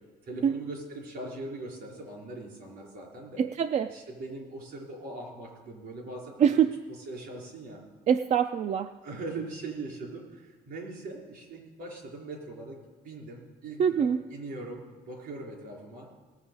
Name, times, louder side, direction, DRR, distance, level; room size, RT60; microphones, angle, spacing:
voice 1, 0.2-3.5 3.9-6.6 6.9-7.8 9.0-12.8 13.0-16.1, right 2 dB, 70° right, -1 dB, 4.3 m, -41 dB
voice 2, 3.4-3.9 6.4-6.7 8.1-8.9 13.8-14.2, right 8 dB, 45° right, 9 dB, 0.4 m, -24 dB
19.0 x 7.0 x 5.4 m, 1.5 s
cardioid pair, 110°, 17 cm